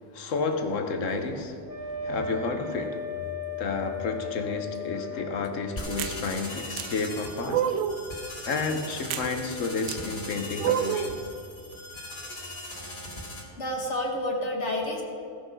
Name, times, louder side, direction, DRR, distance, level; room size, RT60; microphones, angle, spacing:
voice 1, 0.1-3.0 3.6-7.7 8.5-11.2, left 4 dB, 90° left, 6 dB, 1.4 m, -31 dB
Wind instrument woodwind instrument, 1.6-5.9, left 5 dB, 10° right, 1.5 m, -36 dB
sound 1, 5.8-13.4, left 1 dB, 40° left, 2.7 m, -39 dB
sound 2, 6.0-6.2 6.8-6.9 7.5-8.0 9.1-9.3 9.9-10.0 10.6-11.1, right 9 dB, 75° right, 0.9 m, -27 dB
voice 2, 13.6-15.0, left 1 dB, 65° left, 0 dB, 1.7 m, -29 dB
16.5 x 6.2 x 5.3 m, 2.6 s
omnidirectional pair, 1.3 m